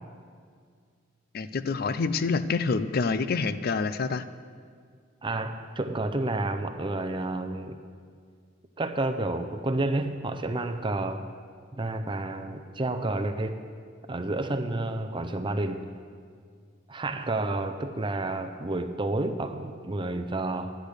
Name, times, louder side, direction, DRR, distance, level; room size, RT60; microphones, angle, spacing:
voice 1, 1.3-4.2, left 4 dB, 50° left, 13 dB, 0.5 m, -27 dB
voice 2, 5.2-7.8 8.8-11.3 11.7-13.6 14.1-15.9 16.9-20.8, right 2 dB, 25° right, 8 dB, 0.6 m, -30 dB
10.5 x 10.5 x 6.5 m, 2.1 s
head